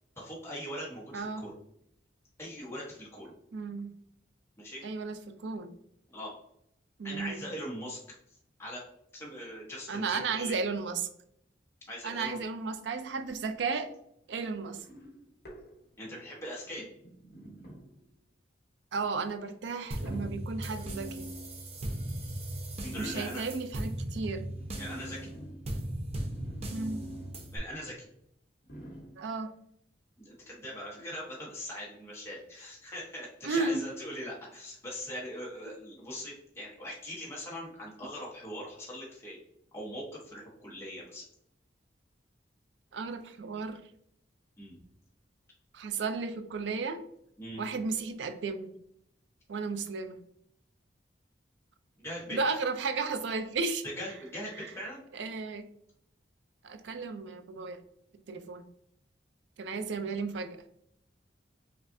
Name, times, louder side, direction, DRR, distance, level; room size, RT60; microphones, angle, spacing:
voice 1, 0.2-1.5 2.4-3.3 4.6-4.8 6.1-6.3 7.0-8.0 8.6-8.8 9.1-10.6 11.9-12.4 16.0-16.9 22.8-23.4 24.8-25.3 27.5-28.1 30.2-39.4 39.7-41.2 44.6-44.8 47.4-47.6 52.0-52.4 53.8-55.0, equal, 15° left, -5 dB, 1.1 m, -41 dB
voice 2, 3.5-3.9 4.8-5.7 7.0-7.4 9.9-11.0 12.0-13.9 14.3-14.8 18.9-21.3 23.0-24.5 26.7-27.0 29.2-29.5 33.4-33.8 42.9-43.8 45.7-47.0 47.6-48.7 49.5-50.2 52.3-53.8 54.6-54.7 55.1-55.6 56.6-57.8 58.3-58.7 59.6-60.6, right 4 dB, 75° right, 9 dB, 0.4 m, -34 dB
sound 1, 14.8-16.2 16.6-18.1 18.9-19.2 20.0-20.7 21.9-22.2 22.9-23.6 24.3-27.6 27.8-27.9 28.6-29.4 30.2-30.3, right 1 dB, 55° left, 1.0 m, -50 dB
sound 2, 19.9-27.6, right 1 dB, 35° right, 0.6 m, -37 dB
5.2 x 2.4 x 2.6 m, 0.74 s
head